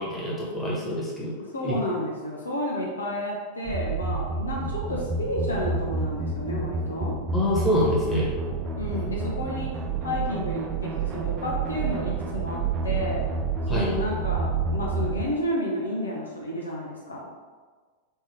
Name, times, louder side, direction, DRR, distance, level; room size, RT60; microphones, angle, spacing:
voice 1, 0.0-1.3 1.6-1.8 7.3-8.3 13.7-13.9, equal, 15° left, -6 dB, 1.4 m, -26 dB
voice 2, 1.5-7.2 8.8-9.7 10.0-12.6 12.8-13.2 13.7-17.2, left 1 dB, 75° left, -3 dB, 0.7 m, -31 dB
sound 1, 3.7-15.2, right 4 dB, 35° right, 0.5 m, -29 dB
4.4 x 2.9 x 3.6 m, 1.4 s
figure-of-eight pair, 90°, 0 cm